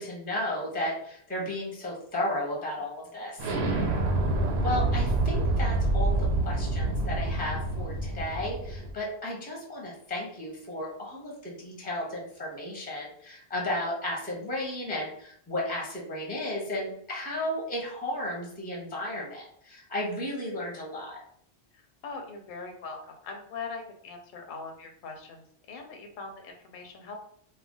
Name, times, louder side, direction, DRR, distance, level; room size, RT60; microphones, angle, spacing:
voice 1, 0.0-3.5 4.6-21.2, left 1 dB, 10° left, -3 dB, 0.6 m, -34 dB
Explosion, 3.4-8.9, right 2 dB, 80° right, 0.9 m, -27 dB
voice 2, 21.7-27.2, left 4 dB, 55° left, 3 dB, 0.7 m, -41 dB
2.4 x 2.1 x 3.6 m, 0.65 s
omnidirectional pair, 1.1 m